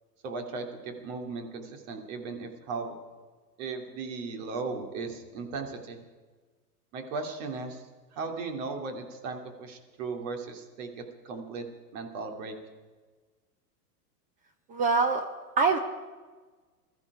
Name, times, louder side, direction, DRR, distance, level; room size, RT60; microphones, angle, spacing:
voice 1, 0.2-2.9 3.6-6.0 6.9-7.8 8.2-11.7 11.9-12.6, right 4 dB, 50° right, 4 dB, 2.7 m, -37 dB
voice 2, 14.7-15.2 15.6-15.8, right 4 dB, 15° right, 7 dB, 0.5 m, -23 dB
20.5 x 14.0 x 4.9 m, 1.4 s
hypercardioid pair, 130°, 48 cm